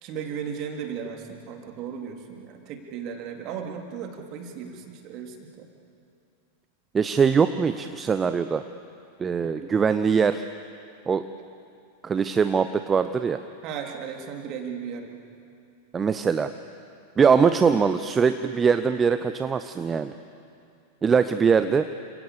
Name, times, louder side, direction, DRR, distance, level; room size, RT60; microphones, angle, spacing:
voice 1, 0.0-5.7 9.4-9.6 13.6-15.2 17.5-18.0, right 7 dB, 40° right, 3 dB, 3.6 m, -36 dB
voice 2, 6.9-8.6 9.2-10.4 11.1-11.3 12.0-13.4 15.9-16.5 17.2-20.1 21.0-21.9, right 6 dB, 20° right, 11 dB, 0.9 m, -22 dB
30.0 x 27.5 x 7.0 m, 2.5 s
figure-of-eight pair, 90°, 0 cm